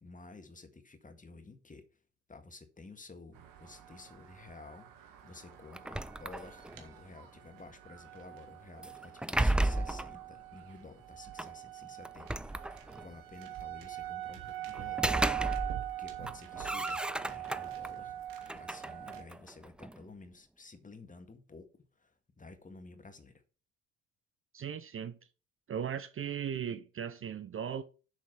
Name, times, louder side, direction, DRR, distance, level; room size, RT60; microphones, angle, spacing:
voice 1, 0.0-1.8 2.3-15.1 16.0-18.1 18.5-21.7 22.0-22.1 22.4-23.3, left 3 dB, 20° left, 1.9 m, -52 dB
sound 1, 3.3-19.2, right 14 dB, 60° right, 2.1 m, -43 dB
sound 2, 5.7-6.9 8.8-10.2 11.4-11.5 12.0-13.1 14.7-15.9 16.2-17.9 18.4-20.0, right 1 dB, 5° right, 0.4 m, -34 dB
voice 2, 24.5-25.2 25.7-27.8, right 8 dB, 35° right, 0.8 m, -37 dB
7.1 x 6.4 x 6.0 m
figure-of-eight pair, 55°, 39 cm